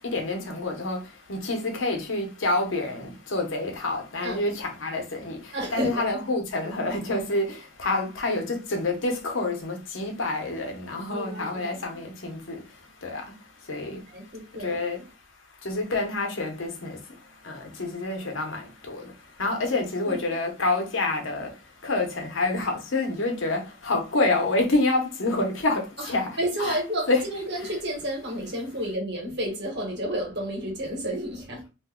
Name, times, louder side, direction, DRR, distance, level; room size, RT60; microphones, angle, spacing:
voice 1, 0.1-1.0 1.3-5.4 5.7-7.6 7.8-12.6 13.0-13.2 13.7-13.9 14.6-15.0 15.6-17.0 17.5-18.6 18.9-19.0 19.4-21.5 21.8-26.3 26.6-26.8 27.1-27.3, left 2 dB, 80° left, 0.9 m, -27 dB
voice 2, 4.2-4.6 5.5-6.2 11.1-11.9 13.9-14.8 19.7-19.8 20.0-20.2 26.0-31.6, right 1 dB, 60° right, 1.1 m, -31 dB
2.6 x 2.2 x 3.6 m
head